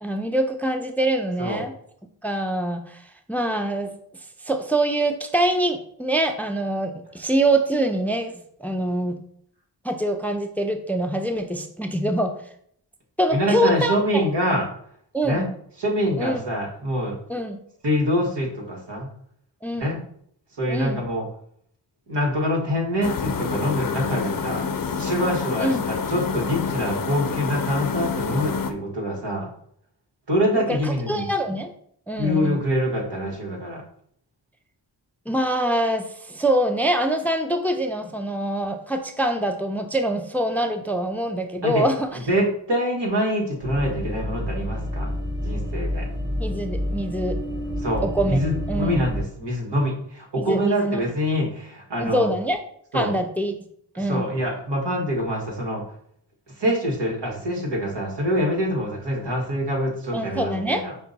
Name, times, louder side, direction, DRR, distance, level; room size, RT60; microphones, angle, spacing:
voice 1, 0.0-1.7 2.2-3.0 3.3-3.9 4.4-9.2 9.8-12.3 13.2-14.0 15.1-15.5 16.2-16.4 17.3-17.6 19.6-19.9 20.7-21.0 25.6-25.9 30.6-31.7 32.1-32.6 35.3-42.2 46.4-47.4 48.0-48.4 48.7-49.1 50.4-51.0 52.0-52.6 52.9-53.5 54.0-54.3 60.1-60.8, right 1 dB, 5° left, 6 dB, 0.5 m, -24 dB
voice 2, 13.3-14.6 15.2-15.5 15.8-17.2 17.8-19.1 19.8-20.0 20.6-21.2 22.1-24.6 25.0-29.5 30.3-31.3 32.2-33.8 41.6-41.8 42.3-45.1 45.4-46.1 47.8-52.3 52.9-53.1 53.9-55.8 56.6-60.9, equal, 75° right, -1 dB, 1.5 m, -25 dB
sound 1, 23.0-28.7, left 6 dB, 55° left, 0.6 m, -27 dB
sound 2, 43.6-49.2, left 1 dB, 25° right, 1.0 m, -29 dB
5.7 x 2.2 x 4.0 m, 0.65 s
cardioid pair, 45°, 41 cm